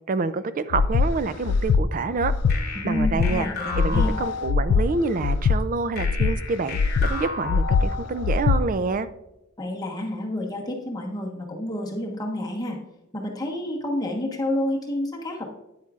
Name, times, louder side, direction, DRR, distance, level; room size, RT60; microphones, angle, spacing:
voice 1, 0.1-2.3 2.8-3.5 3.8-9.1, right 4 dB, 40° right, 13 dB, 0.4 m, -27 dB
Breathing, 0.7-1.1 1.5-1.8 2.2-2.6 3.0-3.3 3.7-4.1 4.5-4.8 5.2-5.6 6.0-6.3 6.7-7.1 7.5-7.8 8.2-8.6, left 5 dB, 85° left, 0.3 m, -21 dB
sound 1, 2.5-5.0 6.0-8.5, left 4 dB, 45° left, 1.1 m, -34 dB
voice 2, 2.7-4.2 9.6-12.8 13.1-15.5, left 1 dB, 20° left, 0 dB, 1.1 m, -29 dB
9.3 x 8.3 x 2.4 m, 0.93 s
head